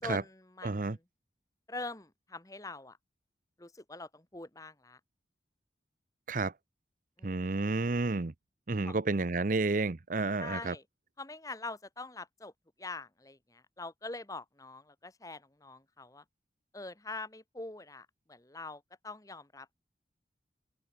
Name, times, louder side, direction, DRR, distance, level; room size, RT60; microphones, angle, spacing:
voice 1, 0.0-1.0 1.7-3.0 3.6-5.0 7.2-7.4 8.8-9.0 10.4-10.8 11.2-12.5 12.8-16.2 16.7-19.7, left 3 dB, 20° left, 1.6 m, -44 dB
voice 2, 0.6-1.0 6.3-6.5 7.2-8.3 8.7-10.7, right 3 dB, 45° right, 0.7 m, -30 dB
open air
head